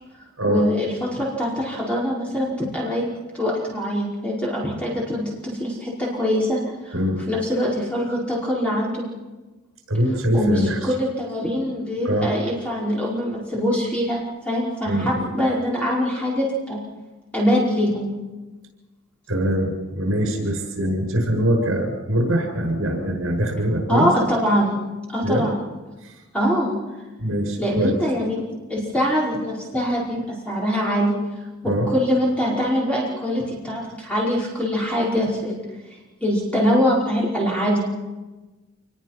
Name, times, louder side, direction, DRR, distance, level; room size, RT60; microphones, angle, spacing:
voice 1, 0.5-3.0 3.4-6.9 7.3-9.1 10.3-16.8 17.3-18.1 23.9-24.7 25.1-25.6 26.3-26.8 27.6-28.4 28.7-31.1 31.6-35.6 36.2-37.8, equal, 5° left, -5 dB, 5.2 m, -23 dB
voice 2, 9.9-10.9 12.0-12.3 14.8-15.3 19.3-24.1 25.2-25.5 26.0-26.2 27.2-28.0 31.6-31.9, right 1 dB, 70° right, 2 dB, 7.5 m, -23 dB
28.0 x 21.0 x 6.0 m, 1.2 s
head